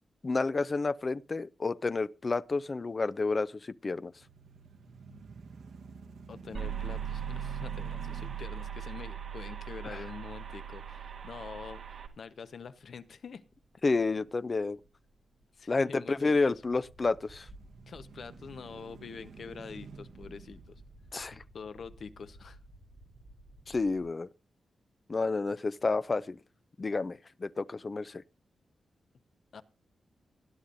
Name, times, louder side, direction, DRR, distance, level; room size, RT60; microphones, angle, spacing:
voice 1, 0.2-4.1 9.8-10.0 13.8-14.8 15.7-17.5 21.1-21.4 23.7-24.3 25.1-26.4 26.8-28.2, left 3 dB, 30° left, 0.5 m, -30 dB
sound 1, 4.0-12.2 12.7-12.8 17.3-21.8, right 5 dB, 80° right, 1.1 m, -51 dB
voice 2, 6.3-13.4 15.6-16.6 17.9-20.8 21.5-22.6 29.5-29.6, left 6 dB, 55° left, 0.9 m, -45 dB
sound 2, 6.3-24.1, right 1 dB, 30° right, 3.9 m, -57 dB
sound 3, 6.5-12.1, right 9 dB, 60° right, 2.0 m, -39 dB
19.0 x 11.5 x 2.6 m
wide cardioid pair, 170°, 0 cm